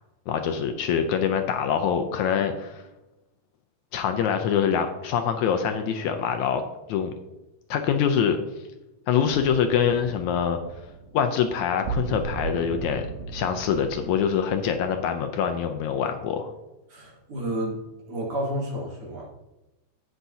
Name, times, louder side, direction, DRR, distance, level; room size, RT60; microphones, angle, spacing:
voice 1, 0.3-2.8 3.9-6.6 6.9-7.1 7.7-8.4 9.1-10.6 11.1-13.1 13.3-16.5, left 7 dB, 75° left, 6 dB, 1.9 m, -24 dB
sound 1, 9.3-15.0, right 5 dB, 80° right, 2.5 m, -37 dB
voice 2, 16.9-19.3, right 1 dB, 50° right, -3 dB, 2.8 m, -31 dB
11.5 x 9.2 x 2.8 m, 0.98 s
omnidirectional pair, 3.6 m